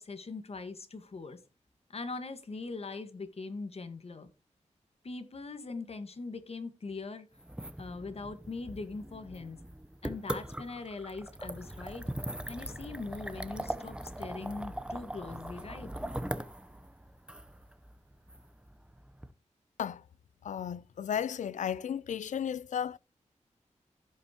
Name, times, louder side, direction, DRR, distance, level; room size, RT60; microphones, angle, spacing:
voice 1, 0.0-1.4 1.9-4.3 5.0-7.3 7.8-9.6 10.0-12.0 12.5-15.9, left 3 dB, 55° left, 1.5 m, -41 dB
sound 1, 7.4-19.3, right 1 dB, 10° right, 0.7 m, -41 dB
voice 2, 20.4-23.0, left 8 dB, 75° left, 0.4 m, -34 dB
15.5 x 5.7 x 2.9 m
wide cardioid pair, 100°, 13 cm